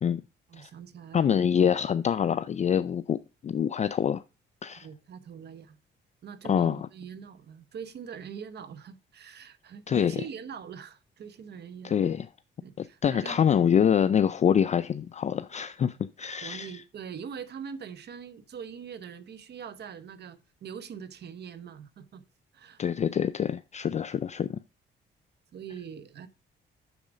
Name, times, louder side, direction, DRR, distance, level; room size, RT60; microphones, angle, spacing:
voice 1, 0.5-1.4 4.8-5.8 6.2-12.1 12.6-13.4 16.4-22.2 22.5-22.8 25.5-26.3, right 7 dB, 55° right, 0.9 m, -43 dB
voice 2, 1.1-3.2 3.4-4.2 4.6-4.9 6.4-6.9 9.9-10.2 11.8-12.3 12.8-16.8 22.8-24.6, left 8 dB, 35° left, 0.4 m, -25 dB
7.1 x 6.4 x 4.9 m
cardioid pair, 90°, 20 cm